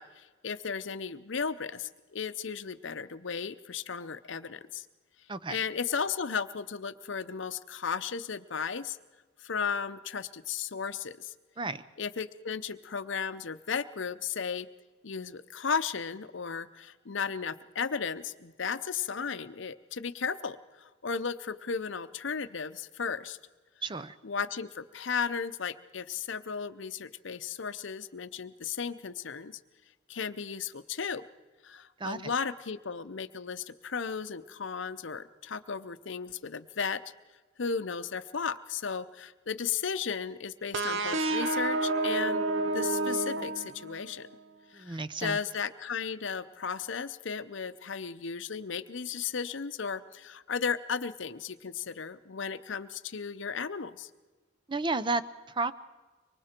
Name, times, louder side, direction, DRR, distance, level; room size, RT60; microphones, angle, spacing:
voice 1, 0.0-4.9 5.5-9.0 9.4-11.3 12.0-14.7 15.0-23.4 24.2-29.6 30.1-31.2 31.6-37.0 37.6-44.3 44.7-54.1, left 6 dB, 65° left, 11 dB, 0.7 m, -35 dB
voice 2, 23.8-24.2 32.0-32.3 44.7-45.4 54.7-55.7, right 3 dB, 25° right, 14 dB, 0.6 m, -32 dB
sound 1, 40.7-44.3, right 2 dB, 75° right, 0.9 m, -30 dB
24.5 x 24.0 x 4.5 m, 1.3 s
head